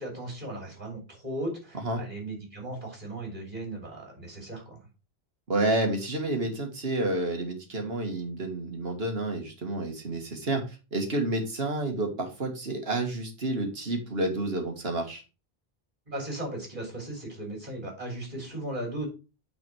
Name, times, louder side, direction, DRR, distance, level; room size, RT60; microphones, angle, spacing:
voice 1, 0.0-4.8 16.1-19.1, right 1 dB, 45° right, -1 dB, 3.3 m, -37 dB
voice 2, 5.5-15.2, right 2 dB, 70° right, 4 dB, 1.9 m, -30 dB
9.3 x 4.2 x 4.5 m, 0.31 s
omnidirectional pair, 1.1 m